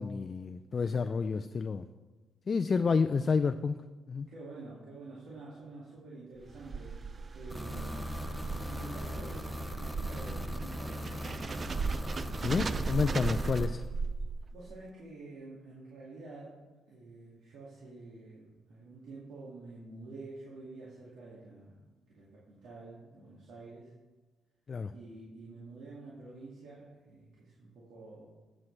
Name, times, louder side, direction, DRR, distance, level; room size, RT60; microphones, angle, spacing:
voice 1, 0.0-1.8 2.5-3.8 4.1-4.3 12.4-13.8 24.7-24.9, left 5 dB, 40° left, 10 dB, 0.4 m, -29 dB
voice 2, 2.7-3.1 4.3-7.0 7.3-12.1 12.4-13.0 14.5-16.6 16.9-23.9 24.9-28.3, right 2 dB, 75° right, -7 dB, 2.1 m, -49 dB
sound 1, 6.4-14.7, right 4 dB, 40° right, 0.4 m, -37 dB
sound 2, 7.5-13.7, equal, 5° right, 0.8 m, -39 dB
13.5 x 7.4 x 3.3 m, 1.3 s
cardioid pair, 90°, 0 cm